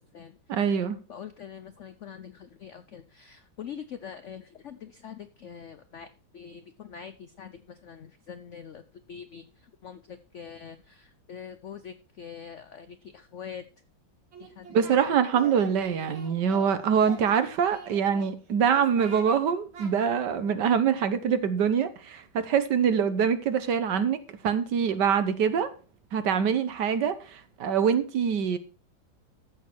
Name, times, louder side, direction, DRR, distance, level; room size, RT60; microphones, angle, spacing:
voice 1, 0.5-1.0 14.7-24.2 24.4-25.7 26.1-28.6, right 7 dB, 65° right, 1.6 m, -24 dB
voice 2, 1.1-6.1 6.3-8.8 9.1-9.4 9.8-13.6 14.4-15.0, left 7 dB, 75° left, 0.6 m, -44 dB
Singing, 14.3-15.0 15.3-16.7 17.0-18.3 18.7-19.4 19.7-19.9, right 5 dB, 85° right, 2.6 m, -44 dB
14.0 x 6.5 x 4.5 m
omnidirectional pair, 2.1 m